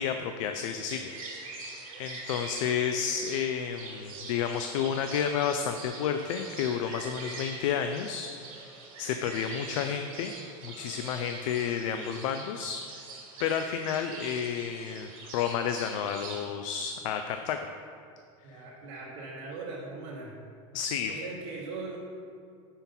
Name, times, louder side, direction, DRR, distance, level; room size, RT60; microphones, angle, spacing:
voice 1, 0.0-1.7 2.0-8.7 9.0-10.3 10.6-13.0 13.4-17.6 18.5-18.6 20.7-21.1, left 8 dB, 70° left, 6 dB, 0.4 m, -31 dB
sound 1, 0.9-16.5, right 3 dB, 85° right, 1.6 m, -44 dB
voice 2, 18.4-20.4 21.1-22.0, right 3 dB, 60° right, -6 dB, 1.0 m, -40 dB
5.4 x 4.5 x 5.4 m, 2.3 s
supercardioid pair, 150°, 17 cm